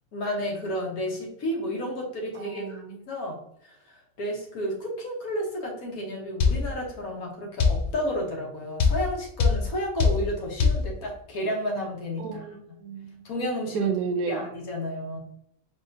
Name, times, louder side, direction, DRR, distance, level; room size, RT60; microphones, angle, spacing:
voice 1, 0.1-12.5 13.2-13.9 14.3-15.2, equal, 75° left, -1 dB, 1.6 m, -32 dB
voice 2, 2.4-3.0 12.2-13.2 13.7-14.4, right 6 dB, 80° right, 8 dB, 1.0 m, -31 dB
sound 1, 6.4-6.6 7.6-7.8 8.8-9.0 9.4-9.6 10.0-10.2 10.6-10.8, left 5 dB, 60° left, 0.7 m, -19 dB
4.3 x 3.5 x 2.7 m, 0.70 s
omnidirectional pair, 1.5 m